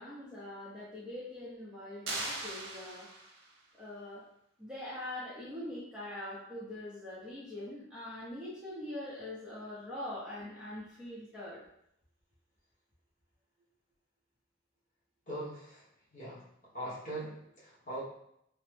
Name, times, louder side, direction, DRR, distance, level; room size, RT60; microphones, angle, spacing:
voice 1, 0.0-3.1 3.8-4.2 4.6-11.6, left 1 dB, 5° right, -9 dB, 0.7 m, -43 dB
sound 1, 2.1-3.6, right 2 dB, 75° right, 0.8 m, -39 dB
voice 2, 15.3-15.9 16.1-16.4 16.7-18.0, right 1 dB, 40° left, -8 dB, 1.1 m, -41 dB
3.0 x 2.1 x 3.2 m, 0.75 s
head